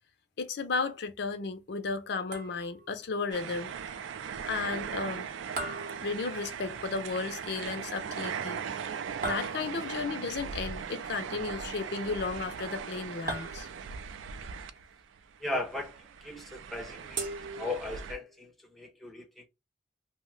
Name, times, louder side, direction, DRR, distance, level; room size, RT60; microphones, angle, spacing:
voice 1, 0.4-3.7 4.5-5.3 6.0-8.6 9.2-13.7, left 4 dB, 60° left, 0.5 m, -34 dB
sound 1, 2.3-2.9 5.6-6.8 9.2-10.1 13.3-14.1 17.2-18.2, right 2 dB, 45° right, 0.7 m, -39 dB
sound 2, 3.3-15.2 15.5-18.1, right 7 dB, 80° right, 0.3 m, -39 dB
voice 2, 15.4-17.3 17.6-19.5, left 2 dB, ahead, 0.4 m, -37 dB
2.7 x 2.1 x 3.1 m
head